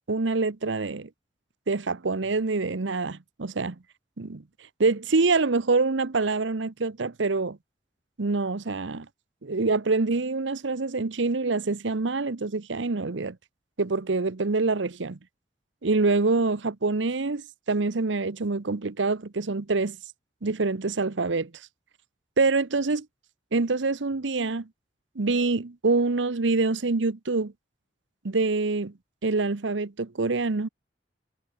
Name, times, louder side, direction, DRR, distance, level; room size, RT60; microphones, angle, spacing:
voice 1, 0.1-1.1 1.7-3.8 4.2-4.4 4.8-7.6 8.2-9.1 9.4-13.4 13.8-15.2 15.8-20.0 20.4-21.5 22.4-23.0 23.5-24.7 25.1-27.5 28.2-28.9 29.2-30.7, right 3 dB, 85° right, 0.9 m, -25 dB
head